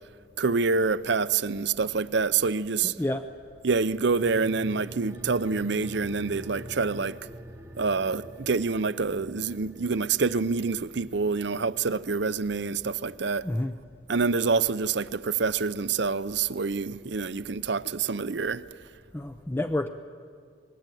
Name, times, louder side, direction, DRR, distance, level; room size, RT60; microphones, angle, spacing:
voice 1, 0.4-2.9 3.6-7.1 7.8-13.4 14.1-18.6, right 4 dB, 55° right, 0.6 m, -26 dB
voice 2, 2.8-3.3 13.4-13.7 19.1-19.9, left 1 dB, 10° left, 0.6 m, -29 dB
sound 1, 3.8-14.7 15.0-15.1, right 1 dB, 15° right, 1.2 m, -46 dB
26.0 x 20.5 x 9.1 m
head